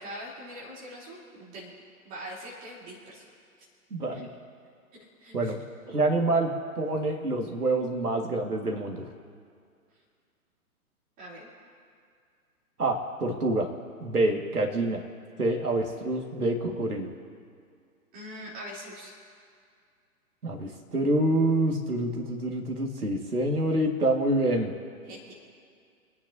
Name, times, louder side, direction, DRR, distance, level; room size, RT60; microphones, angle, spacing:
voice 1, 0.0-1.7 2.0-3.2 4.1-4.2 5.2-5.5 11.2-11.5 18.1-19.1 25.1-25.3, equal, 20° right, -5 dB, 3.6 m, -42 dB
voice 2, 3.9-4.3 5.3-5.6 5.9-9.1 12.8-13.7 14.0-15.0 15.4-17.1 20.4-24.7, right 2 dB, 75° right, 2 dB, 2.2 m, -27 dB
28.0 x 9.8 x 2.8 m, 2.2 s
figure-of-eight pair, 125°, 46 cm